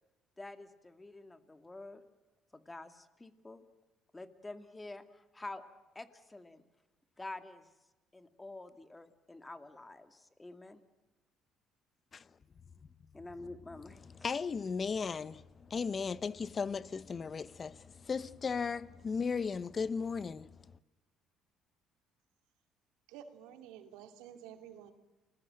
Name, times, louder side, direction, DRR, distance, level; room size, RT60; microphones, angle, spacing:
voice 1, 0.4-2.0 2.5-3.6 4.1-5.6 5.9-6.6 7.2-7.7 8.1-10.8 13.1-14.0, left 2 dB, 15° left, 2.3 m, -48 dB
voice 2, 14.0-20.7, left 5 dB, 35° left, 0.9 m, -36 dB
voice 3, 23.1-24.9, right 9 dB, 85° right, 2.6 m, -51 dB
29.0 x 21.0 x 7.7 m
supercardioid pair, 90°, 0 cm